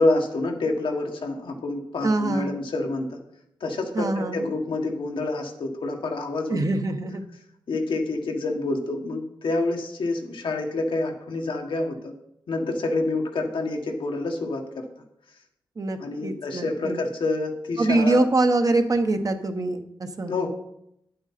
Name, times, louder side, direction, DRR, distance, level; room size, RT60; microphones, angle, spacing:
voice 1, 0.0-3.2 3.6-6.6 7.7-12.1 12.5-14.9 16.0-18.2 20.3-20.5, left 2 dB, 75° left, 2 dB, 1.6 m, -27 dB
voice 2, 2.0-2.6 3.9-4.5 6.5-7.2 15.8-17.0 17.8-20.3, right 2 dB, 45° right, 6 dB, 1.1 m, -24 dB
9.9 x 7.8 x 4.3 m, 0.77 s
cardioid pair, 85°, 9 cm